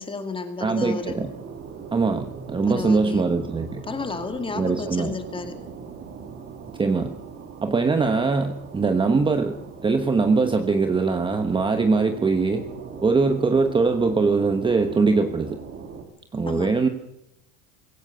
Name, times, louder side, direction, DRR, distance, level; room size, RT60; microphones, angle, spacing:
voice 1, 0.0-1.2 2.7-3.2 3.8-5.6 16.5-16.7, left 4 dB, 10° left, 7 dB, 2.3 m, -32 dB
voice 2, 0.6-1.3 1.9-3.8 4.5-5.1 6.8-7.1 7.6-9.6 9.8-12.6 13.0-15.6 16.3-16.9, right 4 dB, 10° right, 7 dB, 1.2 m, -22 dB
sound 1, 1.0-16.0, right 5 dB, 30° right, 3.5 m, -40 dB
24.5 x 16.5 x 6.8 m, 0.81 s
cardioid pair, 165°, 41 cm